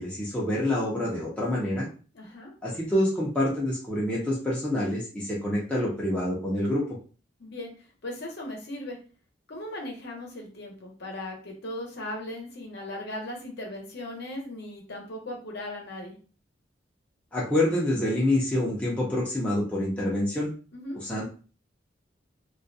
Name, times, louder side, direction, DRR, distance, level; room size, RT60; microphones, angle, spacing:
voice 1, 0.0-1.9 2.6-6.8 17.3-20.5 21.0-21.2, left 1 dB, 5° left, -6 dB, 0.5 m, -27 dB
voice 2, 2.1-2.5 7.4-7.7 8.0-9.0 9.5-16.2 20.7-21.0, left 1 dB, 60° left, 0 dB, 0.7 m, -38 dB
2.3 x 2.1 x 2.6 m, 0.38 s
head